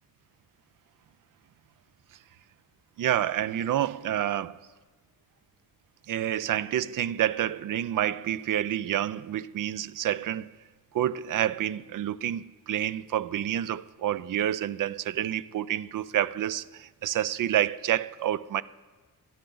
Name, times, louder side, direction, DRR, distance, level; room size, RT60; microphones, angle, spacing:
voice 1, 3.0-4.6 6.1-10.5 10.9-18.6, right 11 dB, 60° right, 0.5 m, -28 dB
23.5 x 10.5 x 3.9 m
wide cardioid pair, 120°, 36 cm